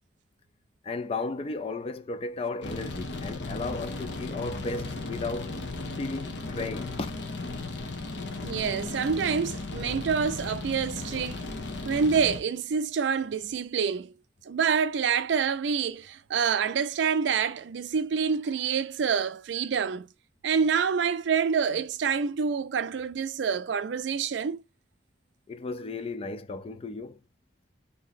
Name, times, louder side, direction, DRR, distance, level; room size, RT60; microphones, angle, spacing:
voice 1, 0.8-5.6 6.0-7.1 25.5-27.2, left 3 dB, 35° left, 0.3 m, -34 dB
sound 1, 2.6-12.4, left 3 dB, 75° left, 0.7 m, -36 dB
voice 2, 8.4-11.4 11.9-14.1 14.5-20.1 20.4-24.6, right 6 dB, 80° right, 0.4 m, -27 dB
2.9 x 2.7 x 4.0 m
head